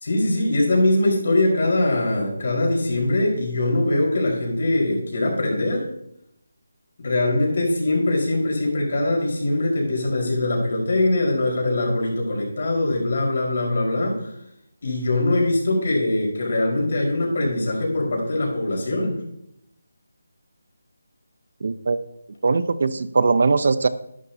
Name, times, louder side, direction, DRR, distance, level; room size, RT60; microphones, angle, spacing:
voice 1, 0.0-5.8 7.0-14.3 14.8-19.2, left 2 dB, 55° left, -2 dB, 4.5 m, -22 dB
voice 2, 21.6-22.0 22.4-23.9, right 4 dB, 55° right, 14 dB, 0.7 m, -20 dB
11.5 x 11.0 x 2.8 m, 0.76 s
figure-of-eight pair, 165°, 0 cm